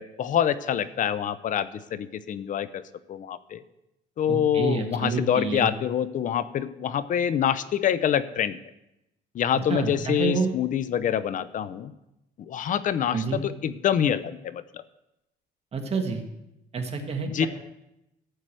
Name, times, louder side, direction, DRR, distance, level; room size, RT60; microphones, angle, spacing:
voice 1, 0.0-2.8 3.1-3.6 4.2-8.6 9.3-11.9 12.4-14.8 17.3-17.5, left 9 dB, 50° left, 15 dB, 0.7 m, -26 dB
voice 2, 4.3-5.7 9.5-10.5 13.1-13.4 15.7-16.2 16.7-17.5, right 4 dB, 35° right, 4 dB, 1.8 m, -28 dB
13.5 x 4.8 x 7.6 m, 0.89 s
cardioid pair, 110°, 17 cm